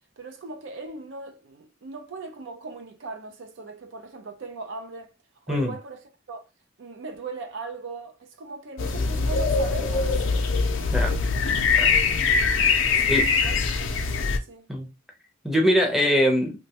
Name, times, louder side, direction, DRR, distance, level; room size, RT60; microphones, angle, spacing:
voice 1, 0.2-5.1 5.5-6.0 6.3-6.4 6.8-10.3 12.9-14.7, right 3 dB, 65° right, 0.5 m, -39 dB
sound 1, 8.8-14.4, left 4 dB, 70° left, 0.5 m, -22 dB
voice 2, 15.4-16.5, equal, ahead, 0.6 m, -22 dB
3.0 x 2.2 x 2.8 m
head